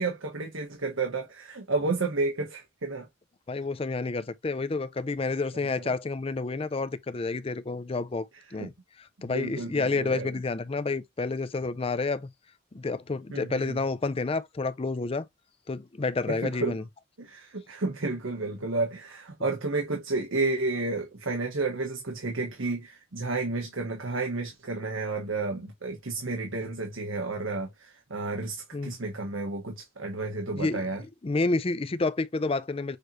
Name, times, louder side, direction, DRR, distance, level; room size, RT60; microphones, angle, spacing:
voice 1, 0.0-3.1 5.7-5.9 8.6-8.7 9.2-10.3 13.3-13.8 16.3-16.8 17.2-31.0, right 3 dB, 80° right, 1.3 m, -31 dB
voice 2, 3.5-8.7 9.0-12.3 12.7-15.3 15.7-16.8 28.7-29.0 30.5-30.8 31.2-33.0, left 3 dB, 30° left, 0.4 m, -29 dB
6.5 x 3.1 x 2.5 m
head